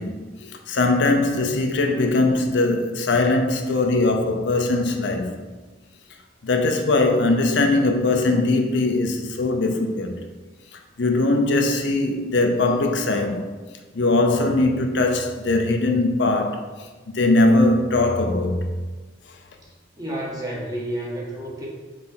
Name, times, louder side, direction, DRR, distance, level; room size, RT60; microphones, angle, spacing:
voice 1, 0.0-5.4 6.4-10.2 11.0-13.5 13.9-16.7 17.1-18.7, left 2 dB, 65° left, 0.6 m, -21 dB
voice 2, 19.6-21.7, right 1 dB, 20° right, 1.2 m, -31 dB
4.4 x 4.0 x 5.6 m
head